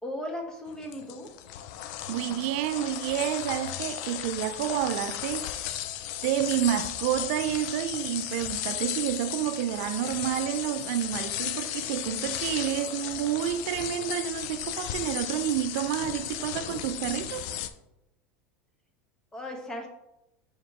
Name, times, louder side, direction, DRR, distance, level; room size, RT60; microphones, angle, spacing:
voice 1, 0.0-1.3 19.3-19.9, left 1 dB, 10° left, 1.1 m, -36 dB
sound 1, 0.7-17.7, left 12 dB, 60° left, 0.5 m, -35 dB
voice 2, 2.1-5.7 6.2-17.5, right 11 dB, 65° right, 0.5 m, -29 dB
4.9 x 4.5 x 4.6 m
supercardioid pair, 135°, 7 cm